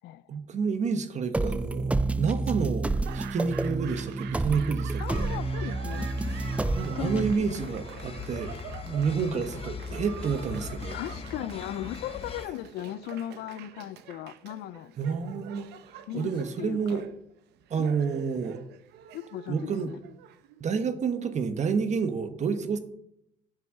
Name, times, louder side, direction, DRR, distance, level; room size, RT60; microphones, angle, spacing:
voice 1, 0.3-2.9 3.1-5.2 6.7-8.5 8.8-11.0 15.0-15.7 16.1-17.0 17.7-18.6 19.5-19.9 20.6-22.8, right 5 dB, 45° right, 1.2 m, -29 dB
sound 1, 1.3-7.3, right 3 dB, 10° right, 0.3 m, -29 dB
Laughter / Applause, 2.8-20.9, right 11 dB, 80° right, 0.8 m, -46 dB
voice 2, 5.0-6.1 7.0-7.5 10.9-14.9 16.1-16.3 16.6-17.0 17.8-17.9 18.3-18.4 19.1-20.0, left 13 dB, 80° left, 0.5 m, -37 dB
sound 2, 5.1-12.5, left 5 dB, 35° left, 0.9 m, -40 dB
7.5 x 6.2 x 7.4 m
cardioid pair, 110°, 17 cm